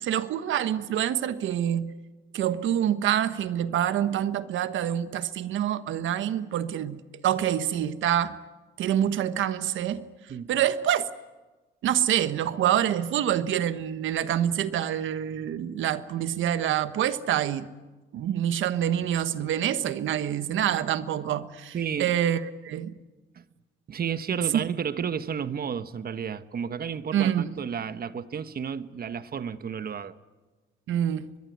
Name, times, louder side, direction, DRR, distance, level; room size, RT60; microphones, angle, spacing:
voice 1, 0.0-1.9 2.3-8.3 8.8-10.0 10.5-11.1 11.8-17.7 18.1-22.9 27.1-27.6 30.9-31.3, right 10 dB, 75° right, 1.3 m, -26 dB
voice 2, 21.7-22.1 23.3-23.4 23.9-30.2, right 7 dB, 50° right, 1.3 m, -32 dB
24.5 x 21.5 x 9.5 m
cardioid pair, 90°, 20 cm